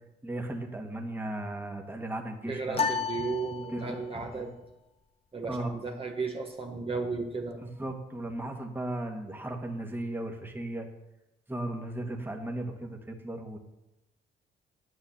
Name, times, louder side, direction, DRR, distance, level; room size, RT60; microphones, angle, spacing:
voice 1, 0.2-2.9 3.7-4.0 4.4-4.5 5.5-5.8 7.6-10.9 11.5-13.6, right 1 dB, 10° right, 3 dB, 1.9 m, -36 dB
voice 2, 2.5-4.5 5.3-7.6, right 4 dB, 30° right, 1 dB, 1.5 m, -34 dB
sound 1, 2.7-4.2, left 5 dB, 30° left, 1.0 m, -32 dB
9.2 x 8.6 x 7.3 m, 0.96 s
cardioid pair, 90°, 20 cm